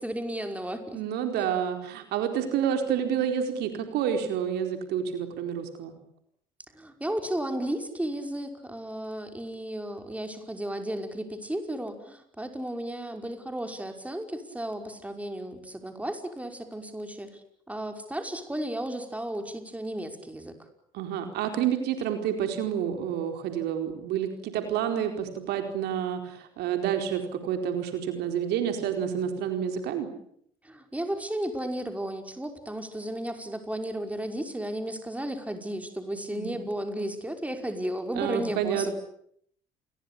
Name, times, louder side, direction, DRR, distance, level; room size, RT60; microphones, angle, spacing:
voice 1, 0.0-1.0 6.7-17.4 17.7-20.5 30.6-38.9, right 1 dB, 10° right, 6 dB, 5.6 m, -34 dB
voice 2, 0.9-5.9 20.9-30.1 36.3-36.6 38.1-38.9, right 9 dB, 70° right, 6 dB, 4.4 m, -29 dB
29.0 x 22.0 x 8.6 m, 0.69 s
hypercardioid pair, 65°, 18 cm